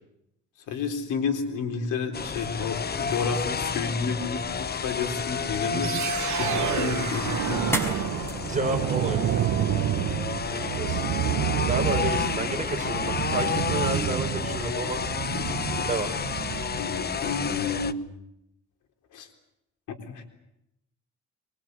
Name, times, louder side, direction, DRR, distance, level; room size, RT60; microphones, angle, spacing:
voice 1, 0.7-5.9 6.4-7.7 12.0-12.1 15.3-15.5 16.8-18.0 19.1-19.3 20.0-20.2, left 5 dB, 85° left, 5 dB, 3.9 m, -30 dB
sound 1, 2.1-17.9, left 6 dB, 30° left, 1.0 m, -31 dB
voice 2, 5.7-6.0 7.1-7.2 8.3-9.5 10.5-11.0 11.6-15.0 15.3-15.4 15.8-16.1, right 3 dB, 25° right, 3 dB, 5.8 m, -31 dB
sound 2, 5.8-16.9, right 12 dB, 70° right, 1.0 m, -29 dB
sound 3, 6.0-17.0, equal, 10° left, 5.8 m, -41 dB
24.0 x 23.0 x 8.2 m, 0.83 s
cardioid pair, 90°, 30 cm